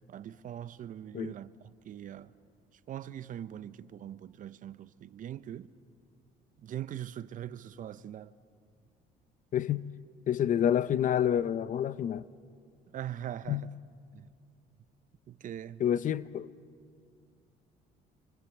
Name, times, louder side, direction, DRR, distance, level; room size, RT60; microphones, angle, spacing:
voice 1, 0.0-2.3 2.9-5.7 6.6-8.3 12.9-13.7 14.1-14.3 15.3-15.8, right 11 dB, 50° right, 0.7 m, -42 dB
voice 2, 9.5-9.8 10.3-12.2 13.5-13.6 15.8-16.5, left 10 dB, 50° left, 0.6 m, -28 dB
28.5 x 24.0 x 7.2 m
cardioid pair, 110°, 17 cm